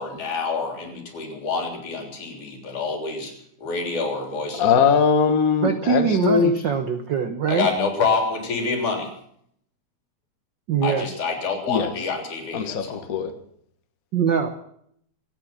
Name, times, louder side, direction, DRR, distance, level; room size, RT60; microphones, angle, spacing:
voice 1, 0.0-3.3 3.6-4.9 7.5-9.1 10.8-13.0, left 4 dB, 75° left, 4.9 m, -27 dB
voice 2, 4.6-6.5 11.7-11.9 12.5-13.3, left 6 dB, 45° left, 1.2 m, -20 dB
voice 3, 5.6-7.7 10.7-11.1 14.1-14.5, right 6 dB, 85° right, 1.0 m, -22 dB
25.5 x 9.0 x 6.0 m
omnidirectional pair, 3.5 m